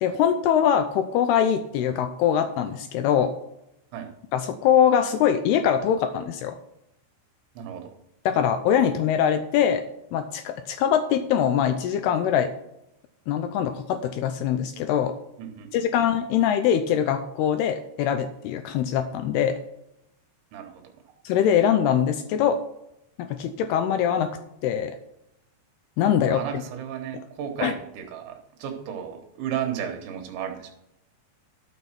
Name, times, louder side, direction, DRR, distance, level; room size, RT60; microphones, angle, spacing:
voice 1, 0.0-3.3 4.3-6.5 8.3-9.8 10.1-12.5 13.3-15.1 15.7-19.6 21.3-22.6 23.2-24.3 24.6-25.0 26.0-26.4 27.1-27.2 27.6-27.7, left 9 dB, 90° left, 8 dB, 2.4 m, -23 dB
voice 2, 7.6-8.0 15.4-15.9 20.5-20.8 26.3-30.7, right 9 dB, 75° right, 4 dB, 3.5 m, -34 dB
12.0 x 6.3 x 5.9 m, 0.82 s
omnidirectional pair, 5.3 m